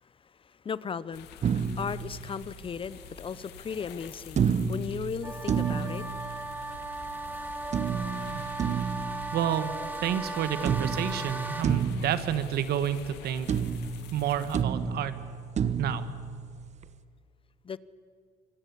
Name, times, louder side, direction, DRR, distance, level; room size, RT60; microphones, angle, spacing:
voice 1, 0.0-6.1 17.6-17.8, left 6 dB, 30° left, 18 dB, 0.7 m, -37 dB
sound 1, 1.1-14.6, left 9 dB, 85° left, 2.2 m, -48 dB
sound 2, 1.4-2.9 4.4-7.0 7.7-10.3 10.6-13.2 13.5-16.9, right 6 dB, 45° right, 1.1 m, -31 dB
sound 3, 5.2-11.6, right 2 dB, 10° right, 2.1 m, -37 dB
voice 2, 9.3-13.5 14.1-15.1 15.8-16.0, right 9 dB, 70° right, 12 dB, 1.7 m, -29 dB
25.5 x 22.5 x 8.5 m, 2.1 s
cardioid pair, 110°, 17 cm